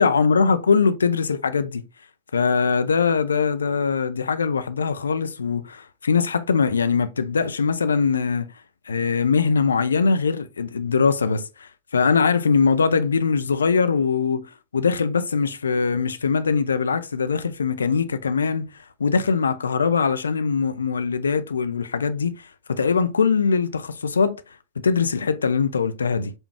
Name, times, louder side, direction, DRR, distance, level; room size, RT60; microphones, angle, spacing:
voice 1, 0.0-1.8 2.3-8.5 8.9-14.4 14.7-18.7 19.0-24.4 24.8-26.3, left 5 dB, 70° left, 0.3 m, -22 dB
5.2 x 2.3 x 3.4 m
figure-of-eight pair, 90°, 0 cm